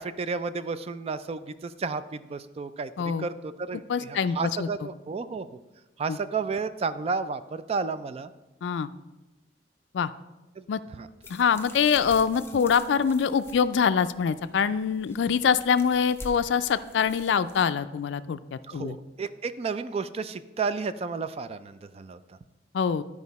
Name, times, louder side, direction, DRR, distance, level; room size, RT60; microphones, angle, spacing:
voice 1, 0.0-5.6 6.0-8.3 10.6-10.7 11.0-11.1 18.7-22.4, right 4 dB, 35° right, 13 dB, 0.3 m, -32 dB
voice 2, 3.0-3.3 3.9-4.7 6.1-6.2 8.6-8.9 9.9-10.1 10.7-10.8 11.3-19.0 22.7-23.0, left 6 dB, 70° left, 13 dB, 0.3 m, -24 dB
sound 1, 11.2-17.6, left 2 dB, 15° left, 0.6 m, -47 dB
11.5 x 4.9 x 4.1 m, 1.1 s
head